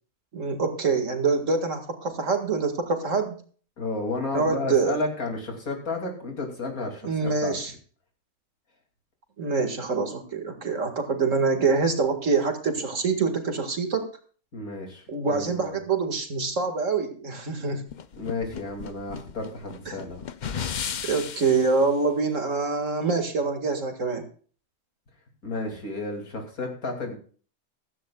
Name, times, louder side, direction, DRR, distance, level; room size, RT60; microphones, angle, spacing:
voice 1, 0.3-3.4 4.3-5.0 7.0-7.7 9.4-14.1 15.1-17.8 19.9-20.0 21.0-24.3, right 4 dB, 60° right, 5 dB, 2.3 m, -25 dB
voice 2, 3.8-7.6 14.5-15.8 18.2-20.2 25.4-27.2, left 3 dB, 75° left, 2 dB, 3.2 m, -32 dB
sound 1, 17.9-21.8, left 7 dB, 50° left, 0.5 m, -35 dB
15.5 x 14.0 x 2.3 m, 0.42 s
omnidirectional pair, 1.5 m